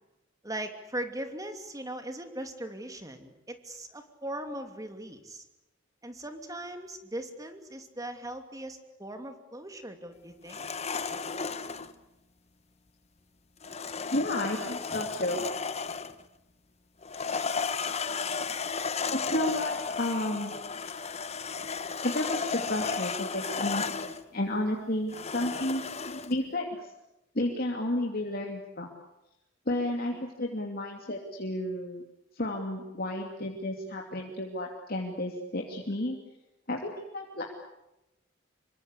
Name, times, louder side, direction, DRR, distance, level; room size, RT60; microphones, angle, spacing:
voice 1, 0.4-5.4 6.0-10.6, right 1 dB, 20° right, 7 dB, 2.8 m, -39 dB
sound 1, 10.5-11.9 13.6-16.2 17.0-24.2 25.1-26.3, left 5 dB, 35° left, 1.1 m, -34 dB
voice 2, 14.1-15.5 19.1-20.6 22.0-26.9 27.3-28.9 29.7-32.0 32.3-36.2 36.7-37.5, left 1 dB, 50° left, 1 dB, 2.9 m, -32 dB
26.5 x 23.5 x 8.4 m, 0.92 s
head